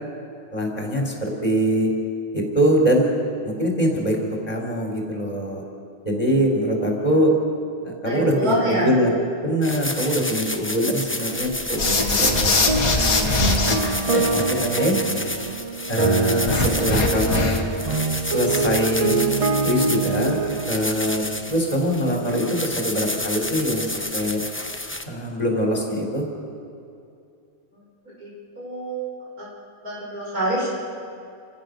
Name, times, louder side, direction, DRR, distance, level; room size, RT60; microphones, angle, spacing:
voice 1, 0.5-1.9 2.3-3.2 3.4-5.6 6.0-7.3 7.8-13.3 13.6-13.8 14.1-15.0 15.9-17.6 18.2-19.2 19.6-20.4 20.7-24.4 25.0-26.2, equal, 25° left, 0 dB, 4.0 m, -23 dB
voice 2, 8.1-8.9 27.7-27.8 28.2-29.1 29.4-29.5 29.8-30.7, right 1 dB, 80° right, -5 dB, 7.1 m, -26 dB
sound 1, 9.6-25.0, left 1 dB, 10° left, 0.9 m, -30 dB
sound 2, 11.8-13.8 16.5-17.8, left 3 dB, 80° left, 2.3 m, -21 dB
sound 3, 12.2-20.8, right 3 dB, 50° right, 0.4 m, -25 dB
29.0 x 16.0 x 6.6 m, 2.5 s
omnidirectional pair, 1.5 m